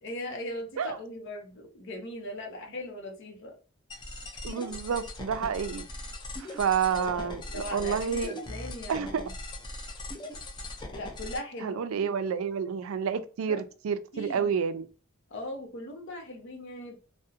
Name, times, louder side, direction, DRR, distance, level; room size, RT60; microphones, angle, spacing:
voice 1, 0.0-3.6 6.9-9.3 10.9-11.8 13.5-13.6 14.1-14.5 15.3-17.0, left 1 dB, 60° left, 0.7 m, -39 dB
sound 1, 3.9-11.4, left 2 dB, 20° left, 0.4 m, -40 dB
voice 2, 4.4-5.9 6.4-8.3 8.9-9.2 11.6-14.9, right 7 dB, 70° right, 0.3 m, -29 dB
2.6 x 2.1 x 2.4 m
head